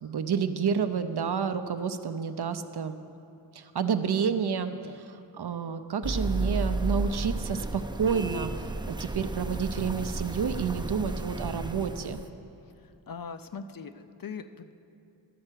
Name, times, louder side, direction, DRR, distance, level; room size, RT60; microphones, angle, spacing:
voice 1, 0.0-3.0 3.5-12.2, right 6 dB, 65° right, 10 dB, 0.5 m, -30 dB
sound 1, 6.0-12.3, right 2 dB, 10° right, 0.4 m, -33 dB
voice 2, 12.8-14.7, left 5 dB, 55° left, 9 dB, 0.5 m, -41 dB
12.0 x 4.4 x 7.4 m, 2.7 s
wide cardioid pair, 45°, 43 cm